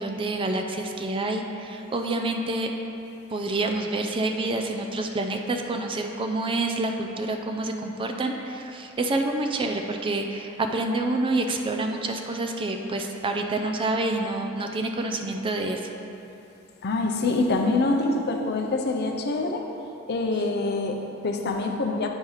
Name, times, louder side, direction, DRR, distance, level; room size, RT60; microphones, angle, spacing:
voice 1, 0.0-2.7 3.3-15.8, right 2 dB, 25° right, 3 dB, 0.4 m, -28 dB
voice 2, 16.8-19.7 20.1-22.1, left 2 dB, 50° left, 3 dB, 0.6 m, -25 dB
8.8 x 3.2 x 5.5 m, 2.8 s
head